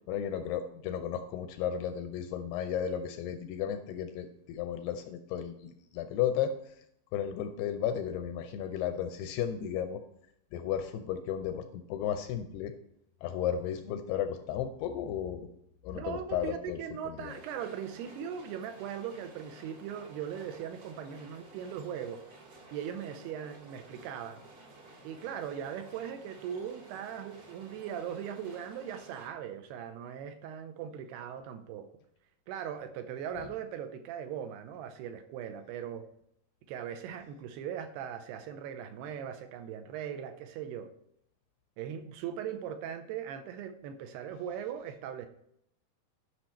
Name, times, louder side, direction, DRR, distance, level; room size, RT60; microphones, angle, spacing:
voice 1, 0.1-6.8 7.1-10.0 10.5-12.7 13.2-15.5 15.8-16.8 17.1-17.3 33.4-33.5, left 9 dB, 80° left, 7 dB, 2.4 m, -34 dB
voice 2, 15.9-22.2 22.7-24.4 25.0-31.9 32.5-36.1 36.7-40.9 41.8-45.3, right 8 dB, 80° right, 9 dB, 2.5 m, -39 dB
sound 1, 17.3-29.3, right 2 dB, 50° right, 1.7 m, -53 dB
11.5 x 6.2 x 4.3 m, 0.75 s
omnidirectional pair, 5.1 m